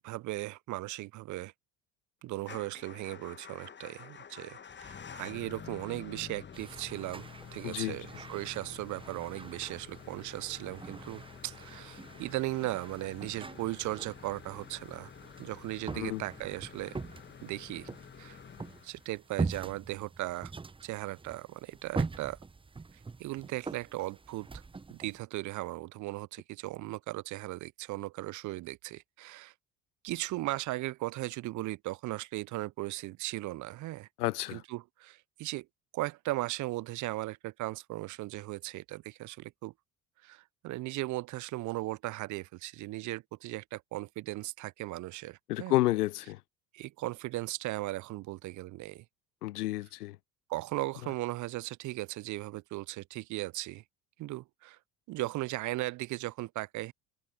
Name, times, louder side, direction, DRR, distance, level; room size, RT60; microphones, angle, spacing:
voice 1, 0.0-1.5 2.2-15.1 15.4-17.0 17.4-17.9 18.2-18.4 18.8-20.5 20.8-22.4 23.2-24.6 24.9-29.5 30.0-34.1 34.5-35.7 35.9-39.7 40.2-45.7 46.7-49.0 50.5-53.8 54.2-54.8 55.1-56.9, right 18 dB, 40° right, 0.5 m, -37 dB
Motor vehicle (road) / Engine starting / Idling, 2.4-19.4, left 7 dB, 25° left, 1.2 m, -49 dB
sound 1, 6.5-25.2, right 4 dB, 10° right, 0.8 m, -43 dB
voice 2, 7.6-8.0 15.9-16.2 34.2-34.6 45.5-46.4 49.4-50.2, left 17 dB, 85° left, 0.6 m, -30 dB
hypercardioid pair, 65°, 45 cm